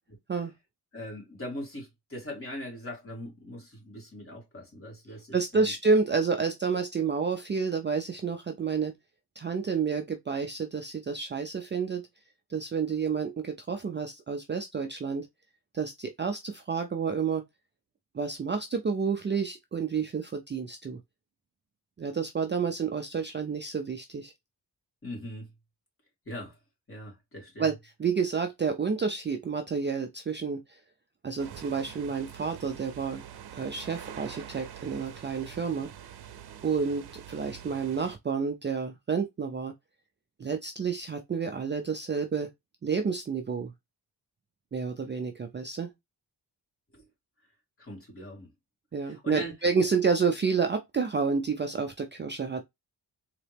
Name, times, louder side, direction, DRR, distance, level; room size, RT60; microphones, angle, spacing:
voice 1, 0.9-5.7 25.0-25.5 26.3-26.6 26.9-27.7 46.9-47.0 47.8-48.5 49.0-49.5, equal, 30° left, 2.7 m, -40 dB
voice 2, 5.3-8.9 9.4-12.1 12.5-15.3 15.7-17.4 18.1-21.0 22.0-24.3 27.6-30.8 31.2-33.2 33.6-35.9 36.6-39.7 40.4-42.5 42.8-43.7 44.7-45.9 48.9-52.7, right 5 dB, 30° right, 0.4 m, -29 dB
sound 1, 31.4-38.2, right 10 dB, 70° right, 0.7 m, -45 dB
4.0 x 2.9 x 3.3 m
wide cardioid pair, 150°, 41 cm